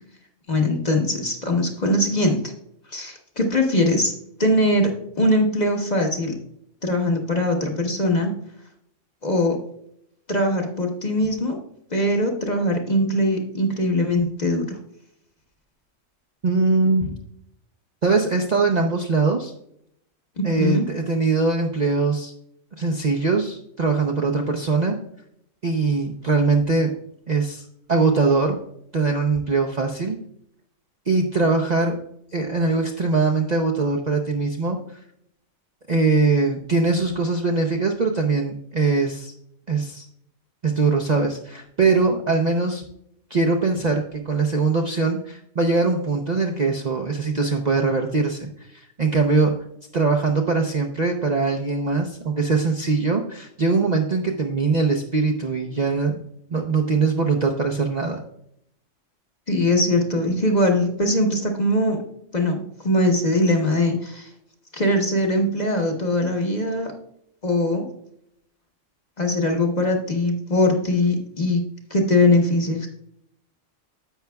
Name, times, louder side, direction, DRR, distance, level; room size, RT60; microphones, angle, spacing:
voice 1, 0.5-2.4 2.9-4.1 4.4-4.9 5.2-6.3 6.8-8.3 9.2-9.6 10.3-11.6 11.9-14.8 20.4-20.8 59.5-62.0 62.3-64.3 64.7-66.9 67.4-67.9 69.2-71.6 71.9-72.9, left 1 dB, 35° left, 2 dB, 1.2 m, -21 dB
voice 2, 16.4-17.1 18.0-19.5 20.4-22.3 22.8-25.0 25.6-26.9 27.3-28.6 28.9-30.2 31.1-32.0 32.3-35.0 35.9-39.3 39.7-40.1 40.6-42.8 43.3-49.5 49.9-56.2 56.5-58.2, right 4 dB, 40° right, 1 dB, 0.7 m, -22 dB
10.0 x 8.0 x 2.3 m, 0.72 s
omnidirectional pair, 1.4 m